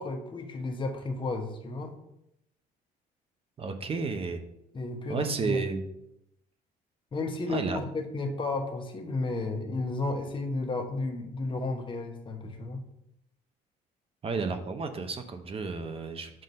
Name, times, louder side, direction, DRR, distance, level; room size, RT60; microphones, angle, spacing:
voice 1, 0.0-2.0 4.7-5.6 7.1-12.8, left 3 dB, 30° left, 3 dB, 1.0 m, -33 dB
voice 2, 3.6-4.4 5.1-5.8 7.5-7.8 14.2-16.3, right 4 dB, 35° right, 7 dB, 0.7 m, -32 dB
7.7 x 2.6 x 5.2 m, 0.82 s
cardioid pair, 110°, 17 cm